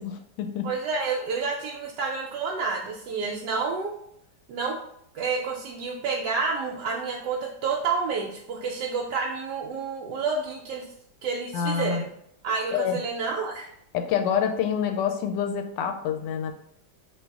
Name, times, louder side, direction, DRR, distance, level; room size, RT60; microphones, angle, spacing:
voice 1, 0.0-0.7 11.5-12.0 12.7-13.0 13.9-16.5, left 7 dB, 85° left, 6 dB, 1.2 m, -27 dB
voice 2, 0.6-4.0 4.5-4.8 5.1-10.9 11.2-12.1 12.4-13.7, right 4 dB, 80° right, -2 dB, 1.2 m, -29 dB
3.3 x 2.6 x 4.5 m, 0.70 s
omnidirectional pair, 1.9 m